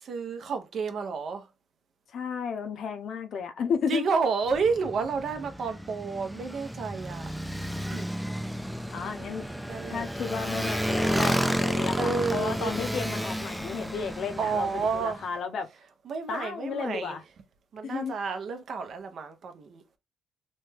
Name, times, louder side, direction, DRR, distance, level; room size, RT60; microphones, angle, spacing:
voice 1, 0.0-1.5 3.9-7.3 7.9-8.1 9.7-10.1 11.1-11.5 12.0-12.7 14.4-15.3 16.1-17.2 17.7-19.8, right 5 dB, 60° right, 0.6 m, -30 dB
voice 2, 2.1-4.0 8.9-9.5 9.9-15.7 16.3-17.2 17.8-18.2, left 6 dB, 65° left, 0.6 m, -33 dB
Motorcycle, 4.5-15.2, equal, ahead, 0.3 m, -31 dB
3.1 x 2.2 x 3.3 m
cardioid pair, 90°, 0 cm